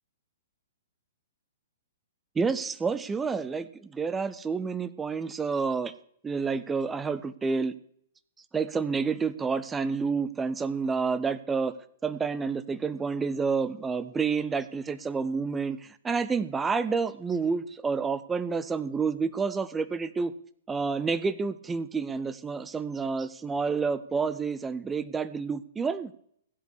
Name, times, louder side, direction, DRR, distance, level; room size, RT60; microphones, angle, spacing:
voice 1, 2.4-5.9 6.2-7.7 8.5-11.7 12.0-20.3 20.7-26.1, right 5 dB, 10° right, 14 dB, 0.7 m, -29 dB
16.0 x 8.2 x 6.8 m, 0.65 s
figure-of-eight pair, 110°, 0 cm